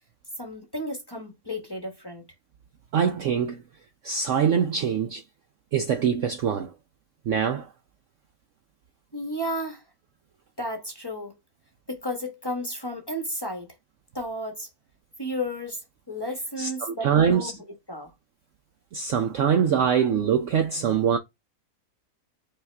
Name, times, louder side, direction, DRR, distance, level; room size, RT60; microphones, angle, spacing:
voice 1, 0.4-2.2 9.1-9.8 10.6-11.3 11.9-13.7 14.1-14.7 15.2-18.1, equal, 15° left, 1.0 m, -33 dB
voice 2, 2.9-3.6 4.0-5.2 5.7-6.7 7.3-7.7 16.6-17.5 18.9-21.2, right 7 dB, 65° right, 0.8 m, -23 dB
5.5 x 2.5 x 3.3 m
omnidirectional pair, 1.7 m